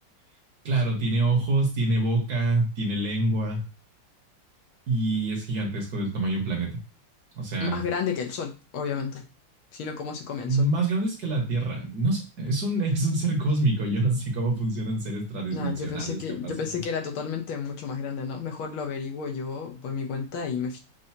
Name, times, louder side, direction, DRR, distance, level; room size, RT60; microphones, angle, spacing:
voice 1, 0.6-3.6 4.9-6.7 7.3-7.8 10.5-16.8, right 2 dB, 55° right, 1 dB, 1.5 m, -26 dB
voice 2, 7.6-9.2 9.7-10.7 15.5-20.8, left 6 dB, 75° left, 3 dB, 1.7 m, -32 dB
6.8 x 2.6 x 2.8 m, 0.30 s
omnidirectional pair, 2.3 m